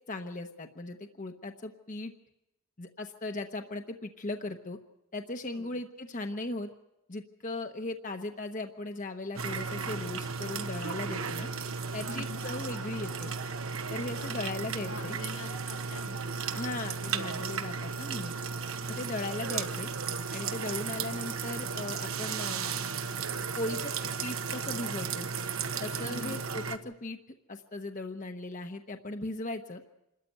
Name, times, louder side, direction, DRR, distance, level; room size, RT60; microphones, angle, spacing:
voice 1, 0.1-2.1 2.8-4.8 5.1-6.7 7.1-11.5 11.9-13.3 13.9-15.2 16.5-18.4 18.9-19.9 20.3-22.8 23.6-23.9 24.2-25.3 25.8-27.2 27.5-29.8, left 2 dB, 40° left, 5 dB, 0.9 m, -38 dB
sound 1, 9.3-26.8, right 5 dB, 85° right, 1.4 m, -35 dB
voice 2, 12.1-12.4 14.0-16.4 18.9-19.1 26.1-26.4, left 3 dB, 75° left, 2 dB, 2.1 m, -46 dB
27.0 x 13.5 x 9.4 m, 0.93 s
head